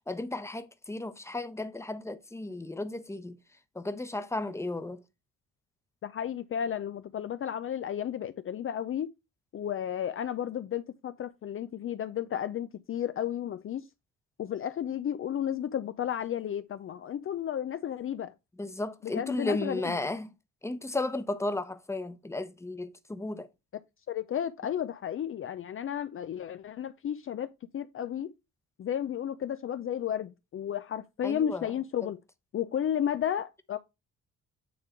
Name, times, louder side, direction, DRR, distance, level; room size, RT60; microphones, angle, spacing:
voice 1, 0.1-3.4 3.7-5.0 18.6-20.3 20.6-23.5 31.2-31.7 32.0-32.1, left 2 dB, 10° left, 0.9 m, -34 dB
voice 2, 6.0-9.1 9.5-13.8 14.4-18.3 19.0-20.0 24.1-28.3 28.8-32.2 32.5-33.8, left 9 dB, 45° left, 0.5 m, -33 dB
9.3 x 3.6 x 4.5 m
cardioid pair, 90°, 30 cm